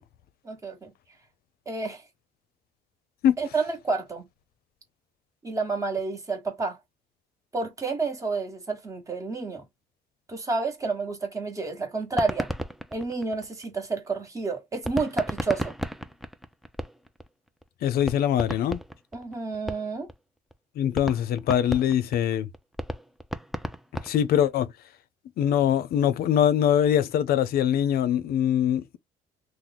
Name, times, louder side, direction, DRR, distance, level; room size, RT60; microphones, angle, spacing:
voice 1, 0.4-0.9 1.7-2.0 3.4-4.3 5.4-6.8 7.5-9.6 10.3-12.5 12.9-15.7 19.1-20.1, right 3 dB, 20° right, 1.2 m, -30 dB
sound 1, 12.0-13.9 14.8-17.3 17.6-17.7 18.0-20.1 20.5-20.6 20.9-24.6, equal, ahead, 0.4 m, -34 dB
voice 2, 17.8-18.8 20.8-22.5 24.0-24.7 25.4-29.0, left 10 dB, 65° left, 0.6 m, -23 dB
3.0 x 2.1 x 3.9 m
cardioid pair, 110°, 17 cm